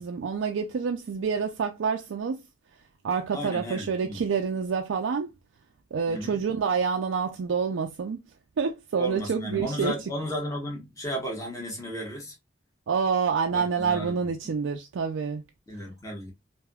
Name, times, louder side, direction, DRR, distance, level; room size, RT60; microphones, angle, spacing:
voice 1, 0.0-2.4 3.0-5.3 5.9-8.2 8.6-10.0 12.9-15.4, right 6 dB, 90° right, 0.4 m, -27 dB
voice 2, 3.3-4.2 6.1-6.4 9.0-12.3 13.5-14.3 15.7-16.3, equal, 15° left, 1.2 m, -34 dB
3.4 x 2.6 x 2.2 m
head